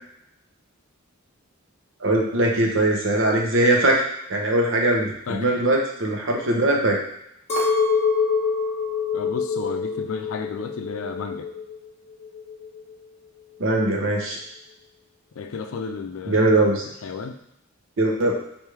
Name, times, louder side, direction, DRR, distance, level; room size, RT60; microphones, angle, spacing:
voice 1, 2.0-7.0 13.6-14.4 16.3-16.8 18.0-18.3, right 1 dB, 65° right, 0 dB, 0.8 m, -21 dB
voice 2, 5.3-5.6 9.1-11.5 15.3-16.6 17.0-17.4, left 5 dB, 80° left, 6 dB, 0.4 m, -33 dB
Chink clink, 7.5-11.9 12.1-12.9, left 5 dB, 35° left, 0.9 m, -25 dB
3.4 x 2.6 x 4.6 m, 0.79 s
head